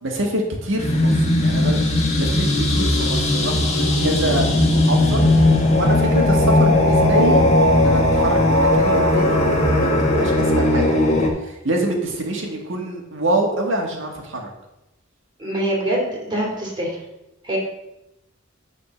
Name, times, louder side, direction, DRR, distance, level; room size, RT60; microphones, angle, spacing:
voice 1, 0.0-1.8 2.2-4.5 4.7-5.2 5.7-7.4 7.7-11.0 11.4-14.5, right 1 dB, 65° right, 1 dB, 1.8 m, -25 dB
sound 1, 0.8-11.3, left 1 dB, 35° left, 1.6 m, -17 dB
voice 2, 15.4-17.0 17.4-17.6, right 1 dB, 20° right, -3 dB, 2.8 m, -24 dB
9.8 x 4.3 x 6.4 m, 0.92 s
head